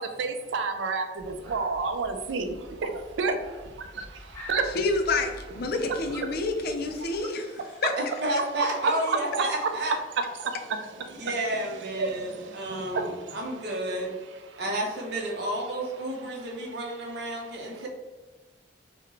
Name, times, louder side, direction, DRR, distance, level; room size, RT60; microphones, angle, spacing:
voice 1, 0.0-4.8 5.6-6.4 7.0-7.8 8.6-9.7 10.2-11.4 11.9-13.4 14.5-14.6 16.4-16.5 17.3-17.9, right 4 dB, 85° right, 7 dB, 0.4 m, -31 dB
sound 1, 1.1-7.2, equal, 15° left, 0.9 m, -47 dB
voice 2, 4.8-7.9, left 3 dB, 55° left, 5 dB, 0.4 m, -28 dB
voice 3, 8.0-10.0 11.1-14.1 14.6-17.9, right 1 dB, 65° right, 0 dB, 0.8 m, -31 dB
3.8 x 2.1 x 3.3 m, 1.3 s
head